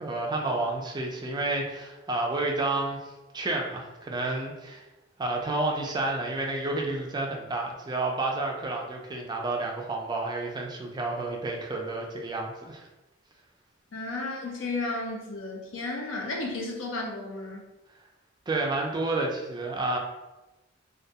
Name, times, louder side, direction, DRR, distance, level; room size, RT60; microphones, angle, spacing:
voice 1, 0.0-3.0 3.3-4.8 5.2-12.9 18.5-20.0, right 2 dB, 20° right, 0 dB, 0.3 m, -30 dB
voice 2, 13.9-17.7, left 2 dB, 75° left, -1 dB, 0.5 m, -33 dB
2.2 x 2.2 x 2.7 m, 1.0 s
head